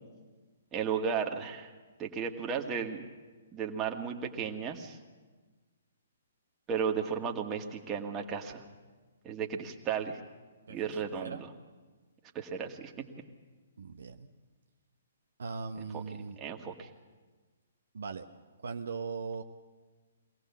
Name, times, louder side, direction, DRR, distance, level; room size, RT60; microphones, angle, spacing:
voice 1, 0.7-1.7 2.0-3.0 3.5-5.0 6.7-8.6 9.2-10.2 10.7-11.5 12.3-12.9 15.9-16.0 16.4-16.9, right 7 dB, 20° right, 2 dB, 1.8 m, -34 dB
voice 2, 13.8-14.3 15.4-16.4 17.9-18.3 18.6-19.4, right 5 dB, 65° right, 6 dB, 1.0 m, -39 dB
23.0 x 18.0 x 7.3 m, 1.3 s
figure-of-eight pair, 125°, 0 cm